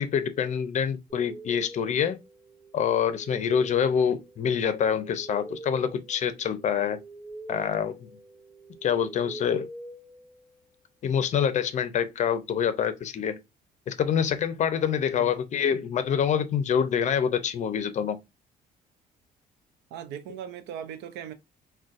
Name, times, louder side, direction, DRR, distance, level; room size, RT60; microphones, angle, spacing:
voice 1, 0.0-2.2 2.7-7.0 7.5-8.0 8.8-9.7 11.0-13.4 13.9-18.2, left 8 dB, 45° left, 0.5 m, -26 dB
sound 1, 1.1-10.8, right 1 dB, 15° right, 1.4 m, -44 dB
voice 2, 19.9-21.3, right 9 dB, 90° right, 0.5 m, -38 dB
3.8 x 2.2 x 2.4 m
cardioid pair, 110°, 17 cm